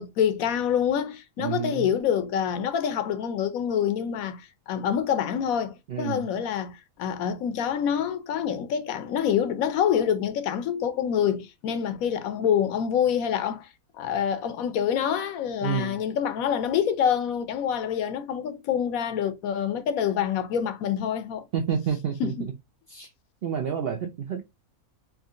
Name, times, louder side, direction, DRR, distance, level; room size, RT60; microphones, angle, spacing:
voice 1, 0.0-13.7 14.0-21.5 22.2-22.5, left 8 dB, 75° left, 1.0 m, -26 dB
voice 2, 1.4-1.9 5.9-6.3 15.6-16.0 21.5-22.5 22.9-23.1 23.4-24.4, right 7 dB, 65° right, 0.6 m, -29 dB
3.6 x 2.8 x 2.4 m
omnidirectional pair, 1.6 m